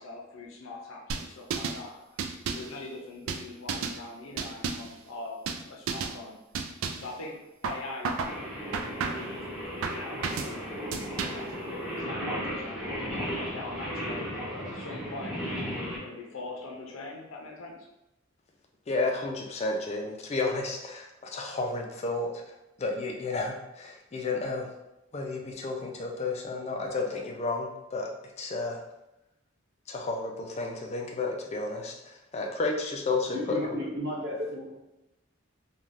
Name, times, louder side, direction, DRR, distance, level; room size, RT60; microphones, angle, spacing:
voice 1, 0.0-6.4 7.0-8.4 8.9-9.6 9.8-15.5 15.9-17.9, left 2 dB, 80° left, 0 dB, 0.5 m, -43 dB
sound 1, 1.1-1.8 2.2-2.7 3.3-4.0 4.4-4.9 5.5-5.6 5.9-6.2 6.5-7.1 7.6-8.4 8.7-9.3 9.8-10.5 10.9-11.5, right 5 dB, 80° right, 0.3 m, -32 dB
Singing, 8.2-16.0, equal, ahead, 1.0 m, -35 dB
voice 2, 18.9-22.3 22.8-24.7 25.1-28.1 28.4-28.8 29.9-33.6, left 3 dB, 30° left, 1 dB, 0.4 m, -32 dB
voice 3, 33.3-34.8, equal, 55° right, -3 dB, 0.8 m, -33 dB
3.2 x 2.2 x 2.5 m, 0.93 s
head